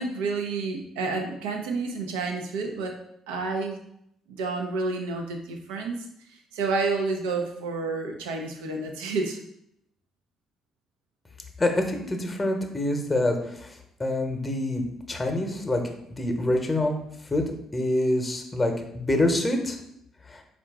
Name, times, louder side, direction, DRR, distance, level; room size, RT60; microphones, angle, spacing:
voice 1, 0.0-3.0 3.3-3.8 4.3-6.1 6.5-9.4, right 3 dB, 80° right, 3 dB, 0.6 m, -29 dB
voice 2, 11.6-17.0 17.3-17.4 17.7-19.8 20.3-20.4, left 1 dB, 20° left, 4 dB, 0.9 m, -26 dB
4.5 x 2.5 x 3.5 m, 0.75 s
hypercardioid pair, 50°, 0 cm